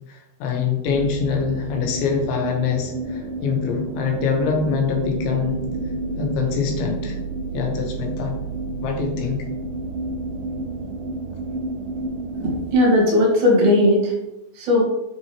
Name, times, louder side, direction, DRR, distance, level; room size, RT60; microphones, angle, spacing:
voice 1, 0.1-5.6 6.2-7.2 7.5-8.4 8.8-9.5, left 6 dB, 85° left, 2 dB, 3.6 m, -24 dB
sound 1, 0.8-12.7, right 3 dB, 90° right, 1.8 m, -30 dB
voice 2, 12.4-14.1 14.6-14.8, left 1 dB, 60° right, -3 dB, 3.5 m, -17 dB
8.3 x 6.0 x 3.1 m, 0.87 s
omnidirectional pair, 5.2 m